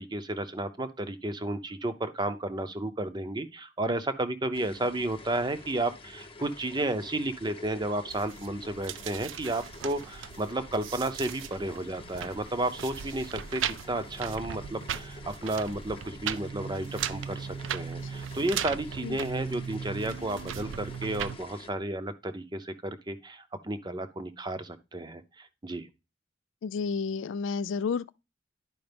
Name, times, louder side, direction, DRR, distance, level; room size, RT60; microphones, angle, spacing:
voice 1, 0.0-13.6 13.9-25.9, right 2 dB, 25° right, 0.7 m, -32 dB
sound 1, 4.5-21.7, left 3 dB, 30° left, 0.8 m, -48 dB
sound 2, 8.1-21.4, right 8 dB, 85° right, 0.4 m, -38 dB
voice 2, 26.6-28.1, left 5 dB, 75° left, 0.3 m, -31 dB
11.0 x 4.9 x 3.4 m
head